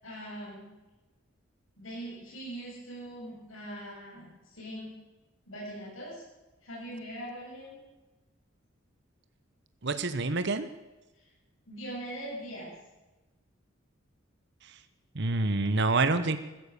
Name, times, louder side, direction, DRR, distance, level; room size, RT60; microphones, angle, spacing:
voice 1, 0.0-0.7 1.8-4.9 5.5-6.2 6.6-7.8 11.7-12.7, right 1 dB, 80° left, -4 dB, 7.7 m, -41 dB
voice 2, 9.8-10.7 15.1-16.4, right 3 dB, 60° right, 11 dB, 1.1 m, -27 dB
15.0 x 14.0 x 6.8 m, 1.1 s
head